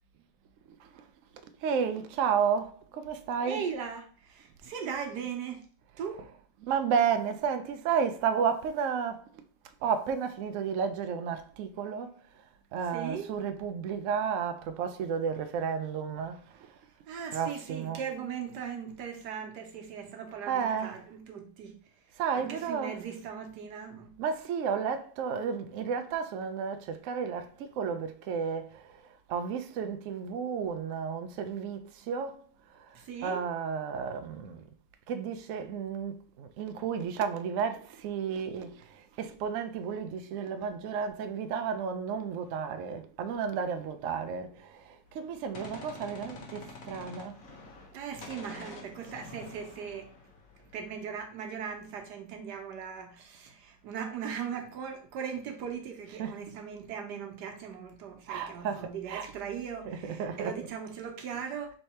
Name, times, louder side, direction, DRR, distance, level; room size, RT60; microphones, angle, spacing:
voice 1, 1.4-3.6 5.9-9.4 9.8-12.4 12.7-16.8 17.3-18.1 20.5-21.0 22.2-22.9 24.2-32.4 32.7-33.0 33.2-34.6 35.1-47.4 56.1-56.4 58.3-59.3 59.9-60.7, right 6 dB, 90° right, 0.7 m, -32 dB
voice 2, 3.4-5.6 6.0-6.2 12.9-13.3 17.1-24.1 32.9-33.5 47.9-50.1 50.6-61.7, right 7 dB, 70° right, 1.4 m, -39 dB
Gunshot gunfire, 45.1-48.0 48.2-50.9, left 3 dB, 55° left, 1.2 m, -47 dB
3.6 x 3.3 x 4.2 m
omnidirectional pair, 1.9 m